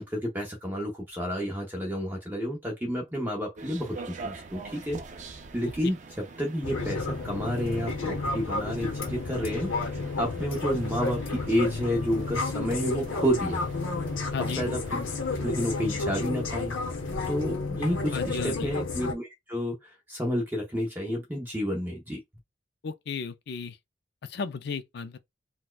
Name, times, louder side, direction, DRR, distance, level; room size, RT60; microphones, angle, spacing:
voice 1, 0.0-5.0 5.5-6.0 6.4-9.7 10.2-13.7 14.5-15.0 15.4-16.7 17.3-19.8 20.1-22.2, equal, 10° right, 0.7 m, -30 dB
sound 1, 3.5-15.9, right 4 dB, 40° right, 0.4 m, -45 dB
sound 2, 6.6-19.1, left 3 dB, 90° left, 0.8 m, -31 dB
voice 2, 14.3-14.7 18.1-18.7 22.8-23.8 24.3-25.2, left 5 dB, 55° left, 0.4 m, -34 dB
4.2 x 2.2 x 2.3 m
head